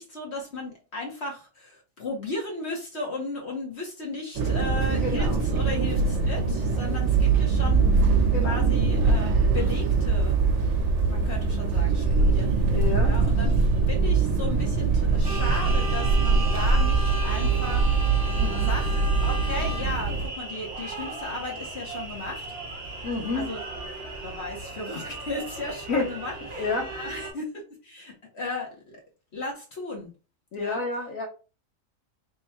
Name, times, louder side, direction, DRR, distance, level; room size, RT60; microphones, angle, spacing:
voice 1, 0.0-8.2 8.4-10.4 11.0-12.8 13.0-17.9 18.5-18.9 19.2-22.6 23.3-23.6 24.2-29.0 29.3-30.1 30.6-30.8, left 2 dB, 55° left, -1 dB, 1.3 m, -35 dB
sound 1, 4.3-20.3, right 4 dB, 65° right, 1.0 m, -23 dB
voice 2, 5.0-5.4 8.3-8.6 12.7-13.1 18.4-18.7 23.0-23.4 25.9-26.1 26.5-26.9 30.5-31.3, left 3 dB, 85° left, 3 dB, 1.4 m, -29 dB
sound 2, 15.2-27.3, right 2 dB, 50° right, 1.3 m, -36 dB
3.5 x 2.2 x 4.2 m, 0.33 s
omnidirectional pair, 1.4 m